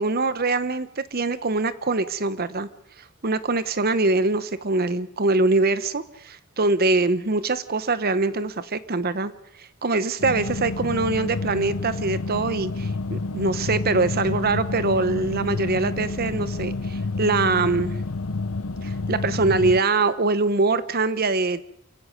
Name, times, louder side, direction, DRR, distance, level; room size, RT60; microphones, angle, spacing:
voice 1, 0.0-2.7 3.2-9.3 9.6-18.0 18.8-21.6, right 3 dB, 45° right, 14 dB, 0.9 m, -23 dB
sound 1, 10.2-19.8, left 3 dB, 75° left, 0.8 m, -29 dB
28.5 x 16.5 x 6.5 m, 0.70 s
head